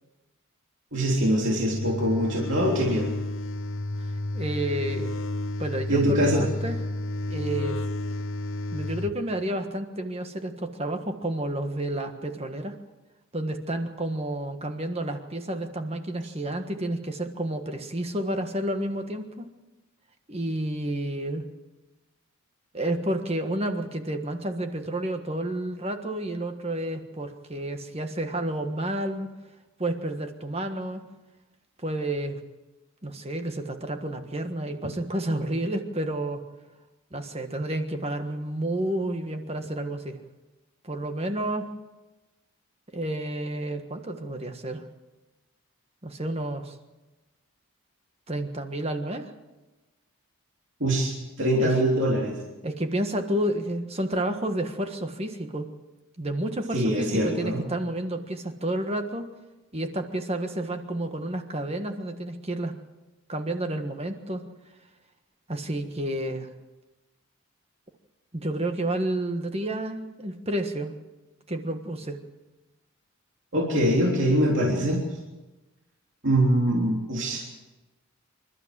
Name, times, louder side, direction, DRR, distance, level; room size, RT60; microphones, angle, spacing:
voice 1, 0.9-3.1 5.9-6.4 50.8-52.4 56.7-57.6 73.5-75.0 76.2-77.4, right 1 dB, 55° right, -2 dB, 3.3 m, -23 dB
sound 1, 1.5-9.1, left 1 dB, 60° left, 0.8 m, -31 dB
voice 2, 4.0-5.1 5.6-6.3 6.6-6.8 7.3-7.8 8.7-12.7 13.3-19.5 20.3-21.4 22.7-29.3 29.8-31.0 31.8-32.4 33.0-36.4 37.1-40.2 40.8-41.7 42.9-44.8 46.0-46.8 48.3-49.3 51.6-51.7 52.6-55.7 56.2-59.3 59.7-62.8 63.3-64.4 65.5-66.5 68.3-70.9 71.5-72.2, right 1 dB, 30° right, 6 dB, 1.5 m, -30 dB
27.5 x 12.5 x 7.7 m, 1.1 s
head